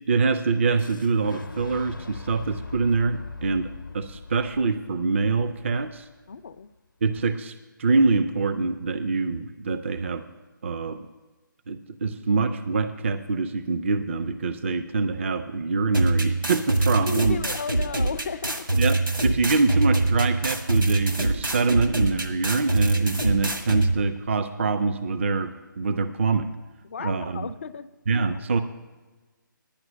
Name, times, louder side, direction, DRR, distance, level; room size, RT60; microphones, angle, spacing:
voice 1, 0.1-6.1 7.0-10.2 10.6-11.1 11.7-17.4 18.8-26.6 27.0-27.5 28.1-28.6, right 4 dB, 35° right, 10 dB, 0.4 m, -25 dB
Fire / Explosion, 0.8-6.7, left 4 dB, 70° left, 0.8 m, -41 dB
voice 2, 6.3-6.7 17.0-18.7 26.8-27.9 28.3-28.4, left 6 dB, 35° left, 13 dB, 0.4 m, -34 dB
sound 1, 15.9-23.9, right 2 dB, 85° right, 1.6 m, -24 dB
10.0 x 5.9 x 8.6 m, 1.3 s
figure-of-eight pair, 145°, 11 cm